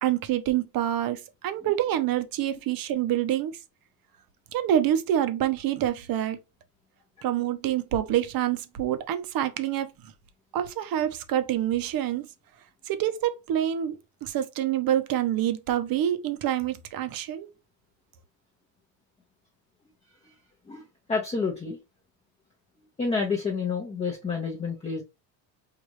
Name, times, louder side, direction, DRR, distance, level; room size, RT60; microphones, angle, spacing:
voice 1, 0.0-3.6 4.5-6.4 7.2-9.9 10.5-12.3 12.9-17.5, right 11 dB, 45° right, 0.8 m, -27 dB
voice 2, 21.1-21.8 23.0-25.0, left 4 dB, 15° left, 0.8 m, -29 dB
4.9 x 2.6 x 3.1 m
supercardioid pair, 115°, 49 cm